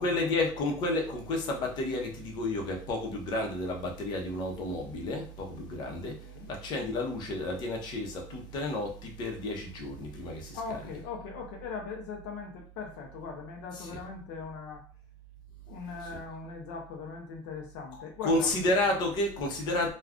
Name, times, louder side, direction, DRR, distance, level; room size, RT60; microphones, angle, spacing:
voice 1, 0.0-10.8 13.7-13.9 16.1-16.2 18.2-19.9, left 2 dB, 55° left, 1 dB, 0.8 m, -31 dB
voice 2, 10.5-14.8 15.7-18.5, left 5 dB, 90° left, 1 dB, 0.6 m, -40 dB
2.4 x 2.3 x 3.5 m, 0.42 s
cardioid pair, 125°, 9 cm